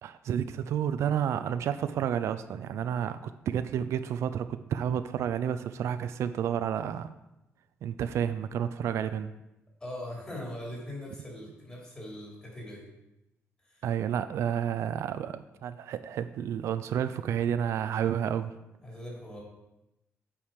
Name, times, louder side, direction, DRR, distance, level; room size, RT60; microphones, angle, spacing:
voice 1, 0.0-7.1 7.8-9.3 13.8-18.5, right 9 dB, 75° right, 11 dB, 0.4 m, -30 dB
voice 2, 9.8-12.9 13.6-13.8 18.8-19.4, left 1 dB, 20° left, -3 dB, 2.9 m, -41 dB
8.6 x 4.8 x 5.2 m, 0.91 s
cardioid pair, 155°, 5 cm